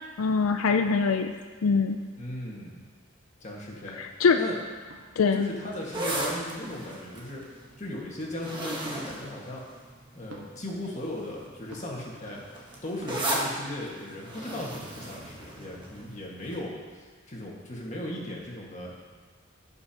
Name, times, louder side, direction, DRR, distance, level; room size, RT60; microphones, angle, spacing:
voice 1, 0.2-1.3 1.6-2.0 4.0-4.4 5.2-5.5, left 5 dB, 90° left, 6 dB, 0.4 m, -23 dB
voice 2, 2.1-2.8 3.4-4.0 4.4-4.6 5.3-7.4 7.8-9.6 10.1-19.2, left 1 dB, 35° left, -3 dB, 1.7 m, -37 dB
sound 1, 4.9-5.1 6.6-7.0 8.8-9.0 10.3-10.5 11.7-12.0 13.0-13.1, right 1 dB, 75° right, 1.5 m, -46 dB
sound 2, 5.7-10.2 10.9-11.2 11.5-16.1 16.5-16.6, right 1 dB, 25° right, 1.4 m, -35 dB
16.5 x 5.6 x 2.9 m, 1.5 s
head